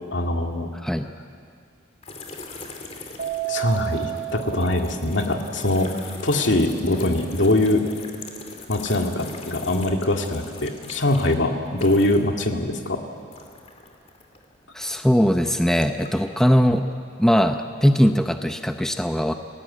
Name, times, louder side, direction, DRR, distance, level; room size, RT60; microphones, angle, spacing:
voice 1, 0.1-0.7 3.5-5.9 6.2-7.8 8.7-13.0, left 1 dB, 70° left, 3 dB, 2.2 m, -22 dB
sound 1, 2.0-12.4 12.7-15.2 15.7-16.5, left 3 dB, 35° left, 2.7 m, -41 dB
Keyboard (musical), 3.2-5.7, right 14 dB, 35° right, 1.1 m, -31 dB
voice 2, 14.7-16.8 17.2-19.3, equal, 5° left, 6 dB, 0.7 m, -20 dB
29.5 x 18.0 x 8.6 m, 2.3 s
head